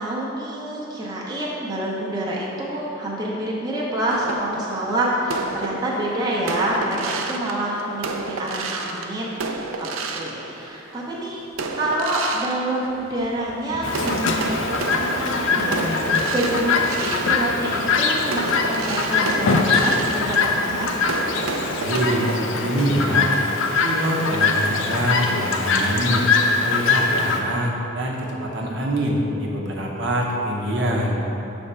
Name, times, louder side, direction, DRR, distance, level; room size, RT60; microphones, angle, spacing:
voice 1, 0.0-11.4 11.8-21.0, right 1 dB, 20° right, -5 dB, 0.7 m, -27 dB
sound 1, 4.1-11.0 11.5-13.5 13.9-22.4, right 3 dB, 85° right, 0.5 m, -31 dB
duble stab, 13.7-21.6, left 1 dB, 45° left, 1.0 m, -41 dB
Chirp tweet, 13.8-27.4, left 4 dB, 75° left, 0.5 m, -22 dB
voice 2, 21.7-23.3 23.8-26.3 26.6-31.1, equal, 60° right, -2 dB, 0.8 m, -24 dB
6.5 x 3.5 x 5.5 m, 3.0 s
head